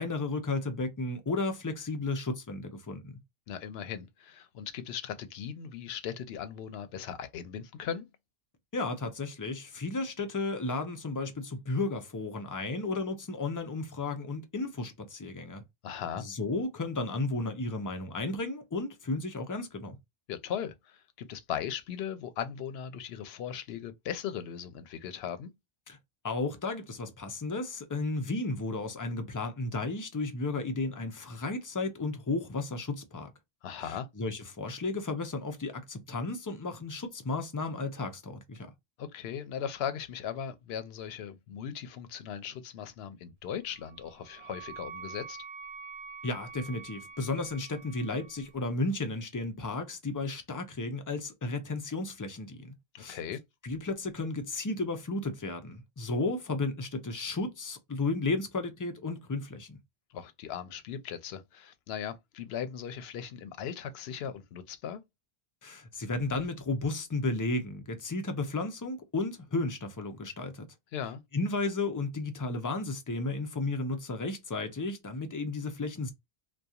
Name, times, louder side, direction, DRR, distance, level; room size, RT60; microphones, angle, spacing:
voice 1, 0.0-3.2 8.7-15.6 16.2-20.0 25.9-26.0 26.2-33.3 33.8-38.7 46.2-53.2 53.6-59.8 65.6-70.7 71.3-76.1, left 2 dB, 30° left, 0.4 m, -33 dB
voice 2, 3.5-8.1 15.8-16.2 20.3-25.5 33.6-34.1 39.0-45.4 52.9-53.4 60.1-65.0 70.9-71.2, left 8 dB, 80° left, 0.8 m, -38 dB
Wind instrument woodwind instrument, 43.7-48.5, right 5 dB, 85° right, 0.9 m, -46 dB
2.8 x 2.2 x 2.2 m
omnidirectional pair, 1.0 m